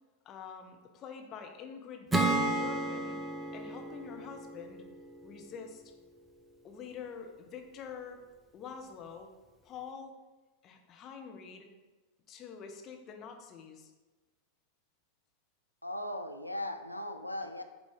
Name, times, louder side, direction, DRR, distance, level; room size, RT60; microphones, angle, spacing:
voice 1, 0.2-3.2 3.5-4.9 5.2-5.8 6.6-8.2 8.5-9.3 9.6-10.2 10.6-11.7 12.3-13.9, left 6 dB, 30° left, 3 dB, 0.8 m, -46 dB
Acoustic guitar / Strum, 2.1-5.6, right 2 dB, 10° right, 0.6 m, -33 dB
voice 2, 15.8-17.6, left 1 dB, 85° left, 6 dB, 0.4 m, -38 dB
8.0 x 2.7 x 4.7 m, 1.2 s
figure-of-eight pair, 90°, 0 cm